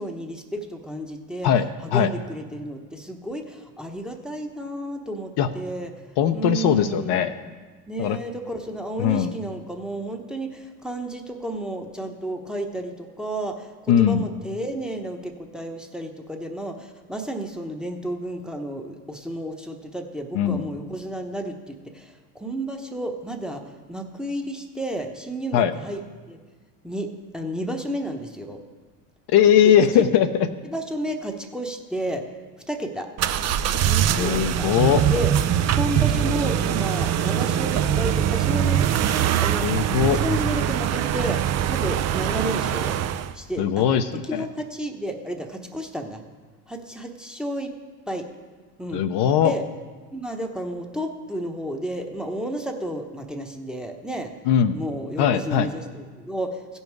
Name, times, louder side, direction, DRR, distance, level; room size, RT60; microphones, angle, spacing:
voice 1, 0.0-1.5 1.8-5.9 6.3-7.2 7.9-26.0 26.3-26.4 26.8-28.6 29.6-29.7 30.6-32.3 32.7-33.1 33.8-34.8 35.1-35.3 35.8-39.9 40.1-43.0 43.3-43.9 44.1-46.2 46.7-47.7 48.1-48.3 48.8-49.0 49.4-49.6 50.1-54.3 54.7-56.8, right 1 dB, ahead, 3 dB, 0.9 m, -32 dB
voice 2, 6.2-7.3 8.0-8.2 9.0-9.3 13.9-14.2 20.3-20.6 25.5-25.7 29.3-30.5 34.2-35.0 39.6-40.2 43.6-44.0 44.3-44.4 48.9-49.5 54.5-54.8 55.2-55.7, left 9 dB, 55° left, 8 dB, 0.7 m, -19 dB
sound 1, 33.2-43.3, right 10 dB, 35° right, 0.5 m, -23 dB
15.5 x 5.5 x 4.6 m, 1.4 s
hypercardioid pair, 80°, 48 cm